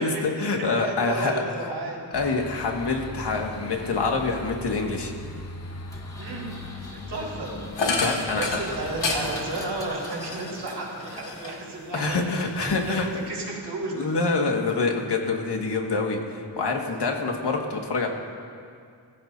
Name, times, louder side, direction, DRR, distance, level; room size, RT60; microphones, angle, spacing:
voice 1, 0.0-1.7 2.1-5.1 7.9-8.6 11.9-13.1 13.9-18.1, left 3 dB, 70° left, 1 dB, 1.9 m, -26 dB
voice 2, 0.6-2.1 6.2-6.5 6.9-7.6 8.1-12.2 12.5-14.0, right 2 dB, 65° right, -4 dB, 4.5 m, -33 dB
sound 1, 2.1-9.4, left 2 dB, 35° left, 1.1 m, -39 dB
Engine, 5.9-11.6, equal, 10° left, 1.7 m, -44 dB
sound 2, 7.7-11.7 12.1-13.3, left 3 dB, 90° left, 2.1 m, -31 dB
24.5 x 15.0 x 2.7 m, 2.3 s
wide cardioid pair, 135°, 43 cm